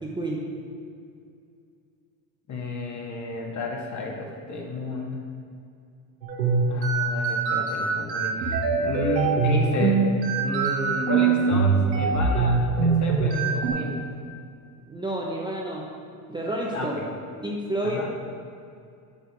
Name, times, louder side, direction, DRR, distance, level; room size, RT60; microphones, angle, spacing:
voice 1, 0.0-0.5 14.9-15.9 16.3-16.9 17.4-18.0, right 1 dB, 10° right, -3 dB, 1.0 m, -29 dB
voice 2, 2.5-5.2 6.7-10.0 10.4-14.0 16.7-17.1 17.8-18.1, left 2 dB, 35° left, 0 dB, 1.8 m, -31 dB
sound 1, 6.2-13.7, right 4 dB, 85° right, 1.7 m, -23 dB
8.3 x 6.6 x 4.9 m, 2.4 s
hypercardioid pair, 90°, 49 cm